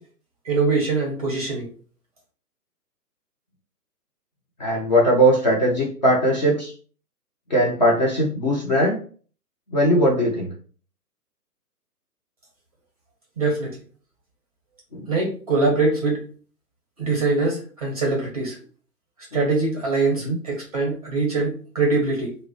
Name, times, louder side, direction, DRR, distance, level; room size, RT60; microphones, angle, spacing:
voice 1, 0.4-1.7 13.4-13.8 15.1-16.2 17.0-18.6 19.3-22.4, right 3 dB, 25° right, -1 dB, 0.6 m, -23 dB
voice 2, 4.6-6.7 7.5-9.0 9.7-10.5 14.9-15.1 19.3-19.4 20.2-20.4, equal, 30° left, -2 dB, 0.5 m, -19 dB
2.3 x 2.0 x 3.8 m, 0.42 s
hypercardioid pair, 145°, 48 cm